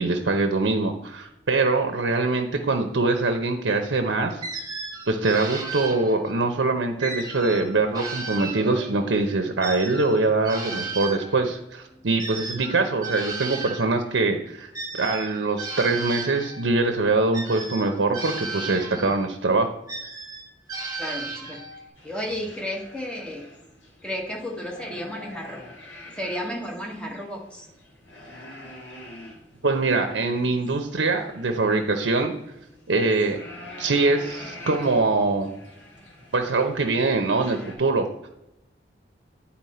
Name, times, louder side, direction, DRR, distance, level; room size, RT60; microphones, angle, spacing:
voice 1, 0.0-4.4 5.1-14.7 15.0-19.7 29.6-32.3 32.9-33.4 33.8-35.5 36.3-38.1, right 3 dB, 85° right, 5 dB, 0.7 m, -23 dB
sound 1, 4.4-6.5 7.0-9.1 9.6-13.9 14.7-16.7 17.3-19.3 19.9-21.9, right 3 dB, 20° right, 1.2 m, -35 dB
voice 2, 21.0-21.6 22.0-23.5 24.0-25.6 26.1-27.7, equal, 5° left, 0 dB, 1.2 m, -33 dB
sound 2, 22.0-37.7, left 1 dB, 85° left, 2.3 m, -45 dB
9.3 x 4.3 x 4.2 m, 0.89 s
head